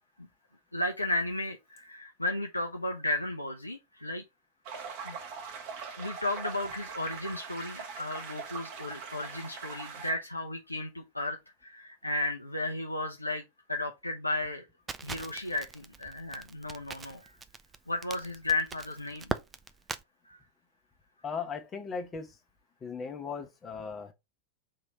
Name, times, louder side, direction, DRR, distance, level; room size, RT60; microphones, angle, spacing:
voice 1, 0.7-4.2 5.0-5.2 6.0-13.4 13.7-14.7 15.0-17.4 17.9-19.3 20.3-20.4, left 2 dB, 85° left, 0.5 m, -34 dB
sound 1, 4.6-10.1, right 6 dB, 45° right, 1.4 m, -42 dB
Crackle, 14.9-20.0, right 5 dB, 20° right, 0.4 m, -40 dB
voice 2, 21.2-22.3 22.8-24.1, left 5 dB, 20° left, 1.0 m, -37 dB
3.8 x 3.2 x 4.4 m
figure-of-eight pair, 90°, 0 cm